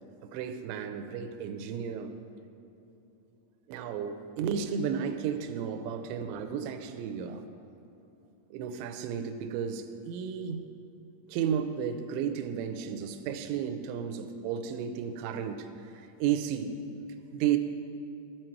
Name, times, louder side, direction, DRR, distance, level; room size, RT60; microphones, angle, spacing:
voice 1, 0.2-2.1 3.7-7.4 8.5-10.6 11.3-15.7 15.9-16.8 17.3-17.6, right 8 dB, 85° right, 7 dB, 2.6 m, -33 dB
12.5 x 7.7 x 4.5 m, 2.9 s
omnidirectional pair, 5.8 m